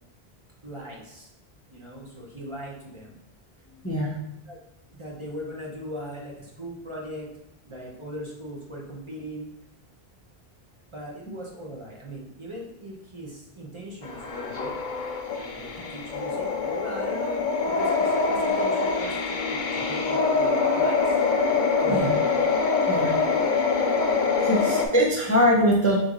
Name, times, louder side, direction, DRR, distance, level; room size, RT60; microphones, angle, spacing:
voice 1, 0.6-1.3 1.7-3.2 4.5-4.6 4.8-7.3 7.6-9.5 10.9-14.8 15.3-17.4 17.8-21.2 21.8-22.2 23.0-23.2, equal, 30° right, -3 dB, 0.8 m, -39 dB
voice 2, 3.8-4.2 21.9-22.1 22.9-23.2 24.4-26.0, equal, 20° left, -3 dB, 0.5 m, -22 dB
sound 1, 14.0-24.9, left 4 dB, 55° left, 0.7 m, -24 dB
3.9 x 3.1 x 3.7 m, 0.77 s
omnidirectional pair, 1.1 m